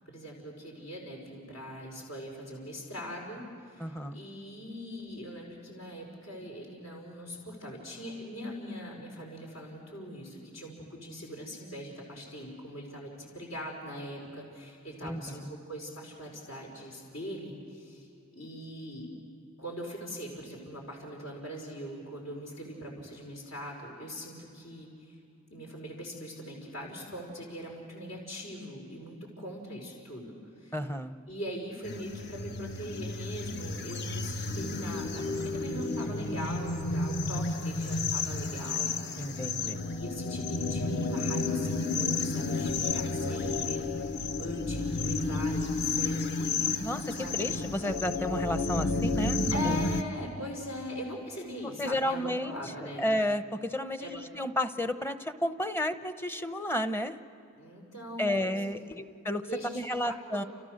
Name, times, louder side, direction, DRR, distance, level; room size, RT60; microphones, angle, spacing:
voice 1, 0.0-18.1 18.3-19.1 19.6-25.2 25.5-30.7 31.3-38.9 39.5-43.9 44.1-46.6 47.1-47.5 49.5-53.0 54.0-54.2 57.5-58.7 59.5-60.5, equal, 70° left, -1 dB, 5.1 m, -41 dB
voice 2, 3.8-4.2 15.0-15.5 30.7-31.1 39.2-39.8 46.8-49.8 51.6-52.5 52.8-57.2 58.2-59.5 59.7-60.4, left 1 dB, 10° left, 10 dB, 0.8 m, -32 dB
sound 1, 31.8-50.0, left 3 dB, 50° left, 1.1 m, -31 dB
29.5 x 29.5 x 6.6 m, 2.6 s
head